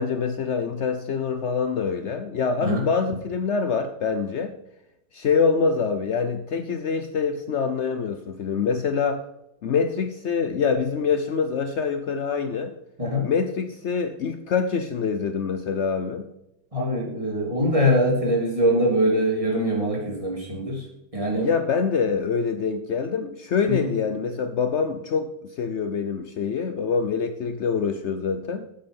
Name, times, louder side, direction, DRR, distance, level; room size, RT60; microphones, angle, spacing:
voice 1, 0.0-4.6 5.1-9.2 9.6-12.7 13.2-16.3 21.3-28.6, left 5 dB, 80° left, 9 dB, 0.6 m, -25 dB
voice 2, 16.7-20.8 21.1-21.5 23.7-23.9, equal, 15° right, -2 dB, 3.5 m, -23 dB
10.0 x 8.0 x 5.4 m, 0.84 s
omnidirectional pair, 2.2 m